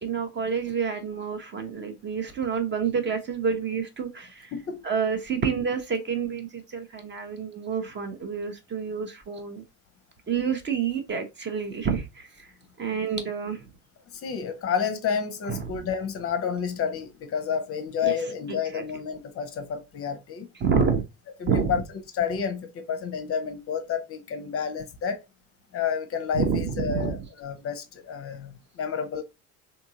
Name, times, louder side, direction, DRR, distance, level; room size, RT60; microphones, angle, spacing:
voice 1, 0.0-4.5 4.8-9.6 10.3-12.5 12.8-13.7 15.5-15.7 18.0-18.1 18.5-18.8 20.6-21.0 21.5-21.7 26.3-27.2, right 6 dB, 25° right, 0.6 m, -28 dB
voice 2, 4.5-4.8 14.1-20.5 21.4-21.8 22.1-25.2 25.7-29.2, left 7 dB, 30° left, 0.6 m, -30 dB
3.6 x 2.7 x 2.7 m
figure-of-eight pair, 65°, 45 cm